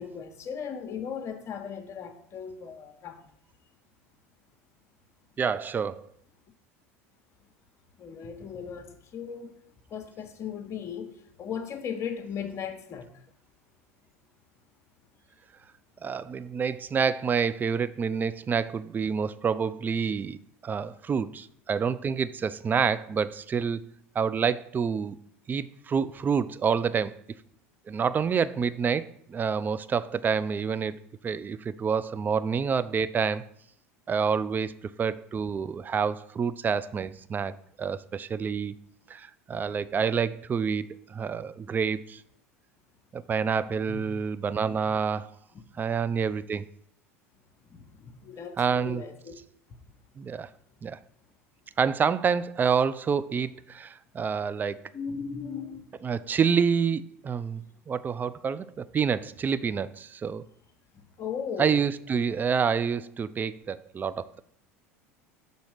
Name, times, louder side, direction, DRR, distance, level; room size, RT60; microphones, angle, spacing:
voice 1, 0.0-3.2 8.0-9.5 9.9-11.1 11.4-13.1 20.7-20.9 43.9-44.0 47.7-49.3 54.9-55.9 61.2-61.8, left 7 dB, 40° left, 1.0 m, -37 dB
voice 2, 5.4-6.0 16.0-20.4 20.6-23.8 24.2-25.2 25.5-27.1 27.9-31.0 31.2-33.5 34.1-34.7 35.0-37.5 37.8-38.8 39.1-42.2 43.1-45.3 45.8-46.6 48.6-49.0 50.2-50.5 50.8-51.0 51.8-54.8 56.0-60.4 61.6-64.4, right 6 dB, 25° right, 0.3 m, -28 dB
6.3 x 3.9 x 4.9 m
hypercardioid pair, 75°, 8 cm